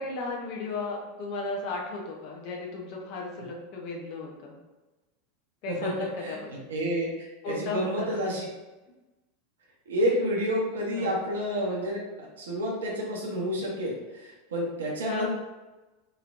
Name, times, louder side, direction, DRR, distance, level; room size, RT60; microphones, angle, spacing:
voice 1, 0.0-4.6 5.6-6.7 7.4-8.3 11.0-11.2 15.1-15.3, left 3 dB, 55° left, 0 dB, 0.7 m, -35 dB
voice 2, 5.7-8.5 9.9-15.3, equal, 75° right, -2 dB, 0.7 m, -30 dB
3.0 x 3.0 x 2.5 m, 1.1 s
hypercardioid pair, 85°, 0 cm